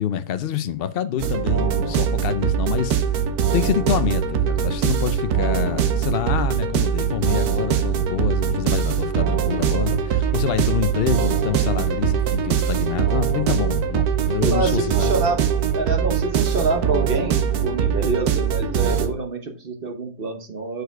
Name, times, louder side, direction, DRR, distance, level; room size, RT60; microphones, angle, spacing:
voice 1, 0.0-3.0 3.5-15.1, left 9 dB, 75° left, 0.5 m, -26 dB
sound 1, 1.2-19.1, right 8 dB, 75° right, 1.3 m, -22 dB
voice 2, 14.4-15.4 15.7-20.8, right 3 dB, 40° right, 1.0 m, -26 dB
6.5 x 4.9 x 4.5 m
omnidirectional pair, 1.6 m